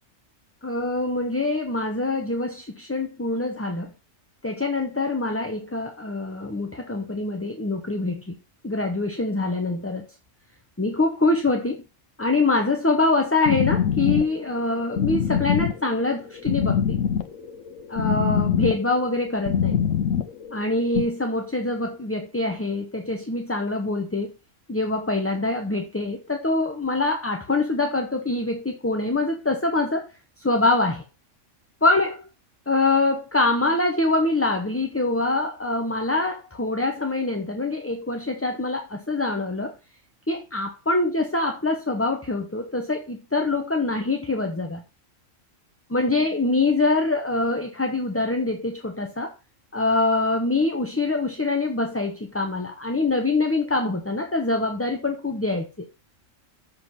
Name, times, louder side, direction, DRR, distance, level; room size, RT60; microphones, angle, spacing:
voice 1, 0.6-3.9 4.4-8.3 8.6-10.0 10.8-11.8 12.2-16.8 17.9-19.8 20.5-24.3 24.7-30.1 30.4-31.0 31.8-32.2 32.7-39.7 40.3-44.8 45.9-49.3 49.7-55.7, left 2 dB, 10° left, 4 dB, 0.8 m, -24 dB
sound 1, 13.5-21.0, left 8 dB, 80° left, 1.2 m, -24 dB
7.8 x 6.6 x 5.7 m, 0.30 s
omnidirectional pair, 1.4 m